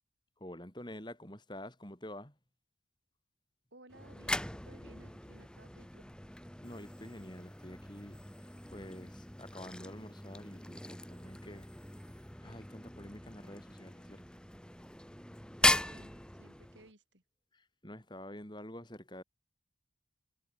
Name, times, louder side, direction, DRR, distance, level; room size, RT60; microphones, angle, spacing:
voice 1, 0.4-2.3 6.6-8.2 8.7-11.7 12.4-14.2 17.5-19.2, left 1 dB, 25° left, 4.8 m, -48 dB
voice 2, 3.7-6.0 15.6-16.1 16.4-17.2, right 1 dB, 70° right, 6.5 m, -59 dB
sound 1, 3.9-16.9, left 1 dB, 5° left, 2.4 m, -38 dB
head